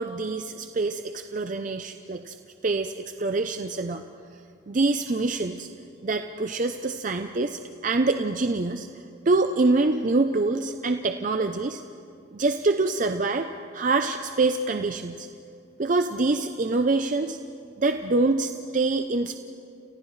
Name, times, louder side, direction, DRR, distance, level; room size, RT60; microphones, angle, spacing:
voice 1, 0.0-2.4 2.6-4.0 4.7-5.7 6.0-8.9 9.3-11.8 12.3-15.3 15.8-17.4 17.8-19.4, right 3 dB, 40° right, 7 dB, 0.5 m, -25 dB
30.0 x 29.0 x 3.2 m, 2.4 s
head